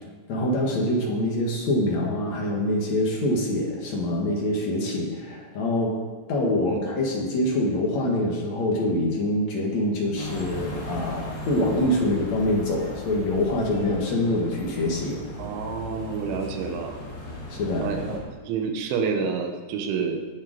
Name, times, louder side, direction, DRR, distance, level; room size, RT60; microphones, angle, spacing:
voice 1, 0.3-6.0 6.3-15.2 17.5-17.9, left 1 dB, 55° left, -1 dB, 2.1 m, -25 dB
sound 1, 10.2-18.2, left 1 dB, 35° left, 2.0 m, -37 dB
voice 2, 15.4-17.0 17.8-20.2, right 5 dB, 80° right, 4 dB, 3.6 m, -29 dB
20.0 x 7.3 x 5.1 m, 1.4 s
omnidirectional pair, 5.5 m